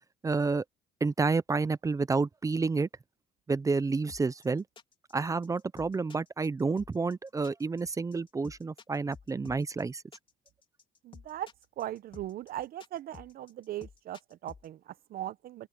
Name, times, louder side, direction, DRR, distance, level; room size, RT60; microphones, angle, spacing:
voice 1, 0.2-0.6 1.0-2.9 3.5-4.6 5.1-10.0, right 4 dB, 20° right, 0.6 m, -29 dB
sound 1, 4.1-14.7, left 5 dB, 30° left, 3.5 m, -51 dB
voice 2, 11.0-11.5 11.8-15.7, right 13 dB, 60° right, 0.8 m, -39 dB
open air
cardioid pair, 110°, 17 cm